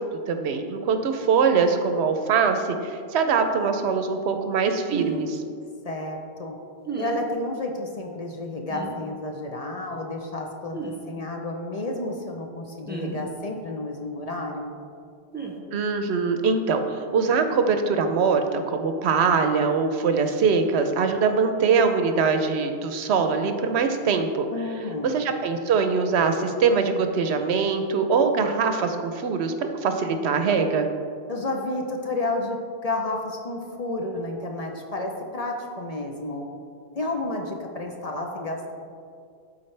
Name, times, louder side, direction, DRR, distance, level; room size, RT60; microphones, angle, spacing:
voice 1, 0.0-5.4 15.7-24.5 25.0-30.9, right 5 dB, 85° right, 7 dB, 0.9 m, -23 dB
sound 1, 4.9-5.2 6.8-7.2 8.7-8.9 10.7-11.0 12.9-13.2 15.3-15.5, right 5 dB, 10° right, 0.6 m, -31 dB
voice 2, 5.8-6.6 7.0-10.8 11.1-14.7 24.5-25.2 31.3-36.5 36.9-38.7, left 2 dB, 40° left, 1 dB, 0.6 m, -31 dB
12.0 x 4.2 x 3.2 m, 2.3 s
omnidirectional pair, 1.1 m